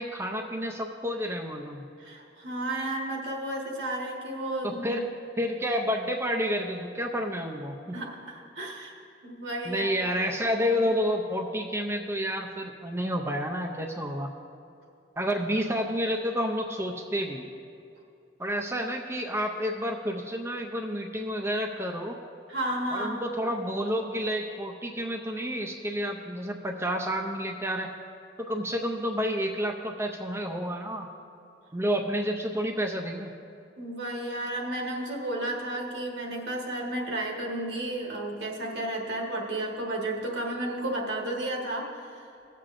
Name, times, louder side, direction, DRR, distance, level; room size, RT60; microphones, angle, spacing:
voice 1, 0.0-1.8 4.6-5.1 5.4-8.0 9.7-14.3 15.2-17.4 18.4-22.2 22.9-27.9 28.4-31.1 31.7-33.3, equal, 15° right, 2 dB, 0.4 m, -30 dB
voice 2, 2.0-5.0 7.9-8.9 9.2-10.0 22.5-23.2 33.8-42.3, right 1 dB, 80° right, 0 dB, 1.4 m, -32 dB
18.5 x 7.4 x 2.5 m, 2.6 s
head